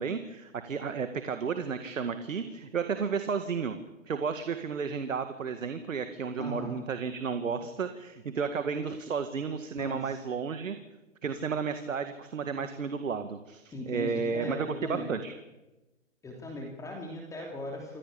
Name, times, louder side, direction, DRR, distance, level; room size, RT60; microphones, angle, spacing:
voice 1, 0.0-3.8 4.1-10.8 11.2-15.3, right 5 dB, 75° right, 9 dB, 2.1 m, -32 dB
voice 2, 6.4-6.8 9.7-10.2 13.7-15.1 16.2-18.0, left 1 dB, 10° left, 0 dB, 3.2 m, -38 dB
26.5 x 16.5 x 8.8 m, 1.0 s
hypercardioid pair, 140°, 39 cm